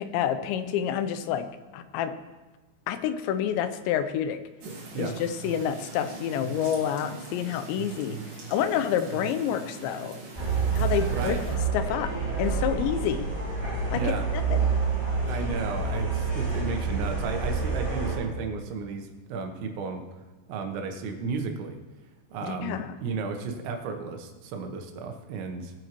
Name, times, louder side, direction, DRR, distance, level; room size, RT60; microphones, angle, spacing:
voice 1, 0.0-1.5 1.7-2.1 2.9-4.4 5.0-8.2 8.5-10.2 10.7-11.4 11.7-12.1 12.4-13.3 13.9-14.6 22.4-23.0, left 9 dB, 85° left, 10 dB, 2.9 m, -28 dB
sound 1, 4.6-11.6, right 4 dB, 55° right, 3.5 m, -41 dB
sound 2, 10.4-18.2, right 5 dB, 10° left, 3.7 m, -28 dB
voice 2, 11.1-11.4 13.9-14.3 15.3-20.0 20.5-21.8 22.3-25.7, right 4 dB, 85° right, 4 dB, 3.4 m, -33 dB
19.5 x 7.9 x 3.0 m, 1.2 s
omnidirectional pair, 5.1 m